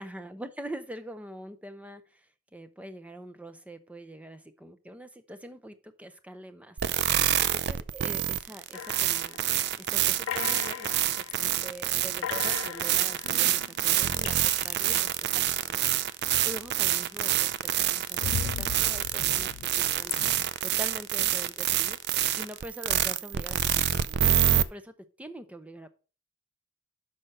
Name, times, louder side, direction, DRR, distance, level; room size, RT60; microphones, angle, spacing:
voice 1, 0.0-9.4 9.8-17.5 17.8-20.1 20.6-22.0 22.4-25.9, right 1 dB, 5° right, 10 dB, 0.6 m, -44 dB
sound 1, 6.8-24.6, right 11 dB, 55° right, 0.4 m, -27 dB
sound 2, 8.7-9.7 10.3-11.5 11.8-12.0 12.2-14.9 16.2-16.9 17.3-20.4, left 8 dB, 75° left, 0.4 m, -38 dB
6.2 x 5.5 x 6.4 m, 0.37 s
head